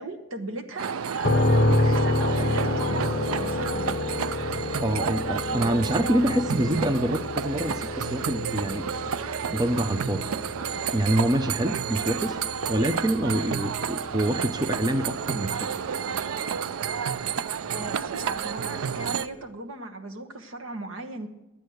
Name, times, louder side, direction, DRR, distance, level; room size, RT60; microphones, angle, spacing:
voice 1, 0.0-4.0 5.5-6.0 13.3-13.6 17.7-21.3, right 2 dB, 70° right, 5 dB, 1.2 m, -37 dB
sound 1, 0.8-19.3, right 7 dB, 90° right, 0.4 m, -31 dB
sound 2, 1.2-15.0, left 2 dB, 40° left, 0.6 m, -29 dB
voice 2, 4.8-8.8 9.5-10.2 10.9-12.4 12.7-15.8, right 1 dB, 20° right, 7 dB, 0.5 m, -26 dB
sound 3, 6.3-19.5, right 3 dB, 55° right, 3.7 m, -48 dB
12.0 x 8.8 x 7.9 m, 0.95 s
head